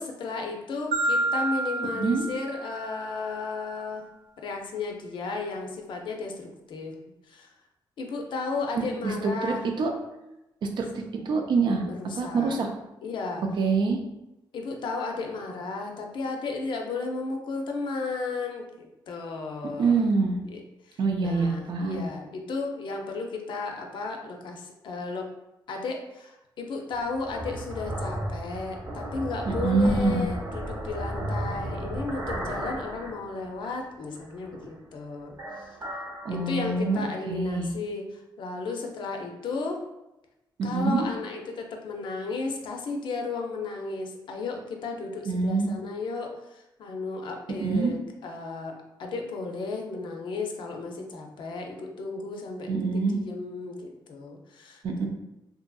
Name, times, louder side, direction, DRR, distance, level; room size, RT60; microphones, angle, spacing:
voice 1, 0.0-4.1 4.4-7.0 7.3-7.5 8.0-9.7 11.8-12.6 13.0-13.4 14.5-19.9 20.4-25.3 25.7-35.7 36.3-39.8 40.6-55.1, left 3 dB, 65° left, 2 dB, 0.5 m, -34 dB
Marimba xylophone, 0.9-3.1, right 2 dB, 90° right, 1.0 m, -29 dB
voice 2, 1.9-2.3 8.8-9.9 10.6-11.8 12.2-12.7 13.6-14.0 19.8-20.3 21.0-22.0 29.5-30.3 36.2-37.7 40.6-41.1 45.3-45.7 47.6-47.9 52.7-53.2 54.8-55.1, right 4 dB, 65° right, 3 dB, 0.4 m, -25 dB
sound 1, 26.9-33.8 34.2-35.0 35.3-37.0, right 1 dB, 35° right, 0.8 m, -34 dB
2.7 x 2.5 x 2.3 m, 0.94 s
cardioid pair, 85°, 9 cm